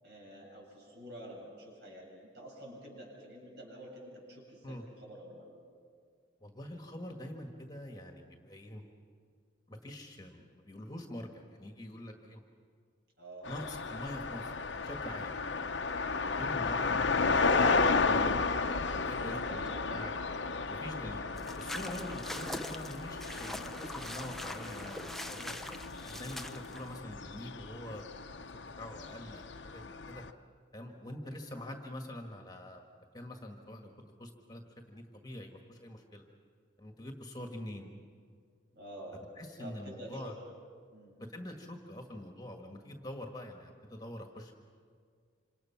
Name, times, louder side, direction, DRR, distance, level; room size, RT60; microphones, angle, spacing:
voice 1, 0.0-5.5 13.2-13.6 16.1-16.4 18.9-20.3 38.7-39.2 39.6-40.4 40.9-41.2, right 1 dB, 55° right, -2 dB, 7.6 m, -49 dB
voice 2, 6.4-8.8 9.7-12.4 13.5-15.3 16.4-18.5 18.8-19.6 19.9-20.1 20.7-21.2 21.6-25.5 26.0-30.2 30.7-32.8 33.1-33.9 34.2-36.2 36.8-37.9 39.4-40.3 41.2-44.5, left 1 dB, 20° left, 3 dB, 1.6 m, -45 dB
sound 1, 13.4-30.3, left 4 dB, 70° left, 0.9 m, -33 dB
sound 2, 21.1-27.1, equal, 40° left, 1.0 m, -54 dB
sound 3, 21.4-27.0, left 1 dB, ahead, 0.5 m, -43 dB
27.0 x 27.0 x 5.9 m, 2.1 s
head